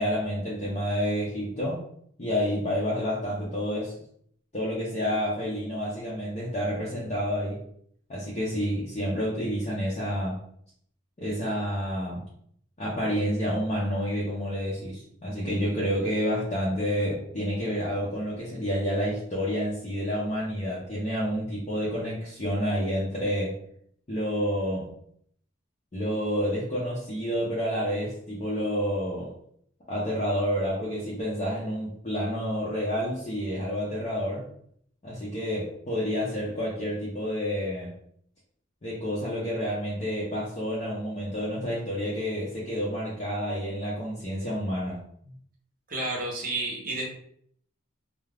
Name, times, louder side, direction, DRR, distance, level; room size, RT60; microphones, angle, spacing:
voice 1, 0.0-1.8 2.2-3.9 4.5-7.6 8.1-10.4 11.2-12.2 12.8-23.6 24.1-24.9 25.9-29.3 29.9-34.5 35.0-37.9 38.8-45.3, equal, 35° left, -8 dB, 0.6 m, -29 dB
voice 2, 45.9-47.1, right 2 dB, 40° right, -2 dB, 0.7 m, -30 dB
2.4 x 2.1 x 3.3 m, 0.64 s
head